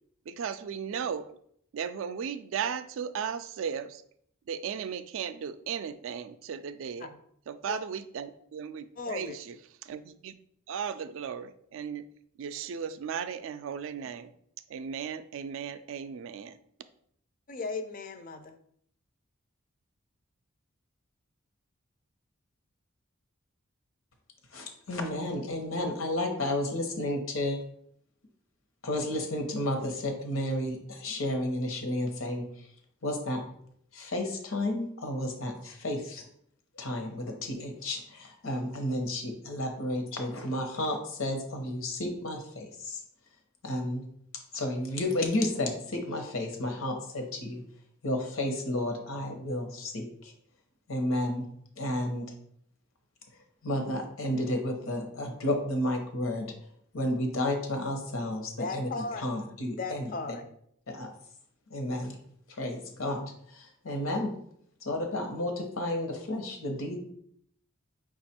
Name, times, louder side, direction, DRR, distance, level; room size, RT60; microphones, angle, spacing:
voice 1, 0.3-1.3 1.7-4.0 4.5-7.1 7.5-9.6 9.8-10.4 10.7-12.1 12.4-14.3 14.7-16.6, right 7 dB, 65° right, 12 dB, 0.3 m, -36 dB
voice 2, 9.0-9.4 17.5-18.6 58.6-59.3 59.7-60.5, left 3 dB, 40° left, 9 dB, 0.4 m, -36 dB
voice 3, 24.5-27.6 28.8-32.4 33.0-33.4 33.9-36.2 36.8-43.0 43.6-44.0 44.5-47.6 48.0-50.3 50.9-51.4 51.8-52.3 53.6-56.5 56.9-58.9 59.2-60.0 60.9-61.1 61.7-62.1 62.6-63.2 63.5-64.3 64.8-67.0, left 1 dB, 80° left, 4 dB, 0.9 m, -32 dB
5.1 x 2.4 x 4.3 m, 0.68 s
head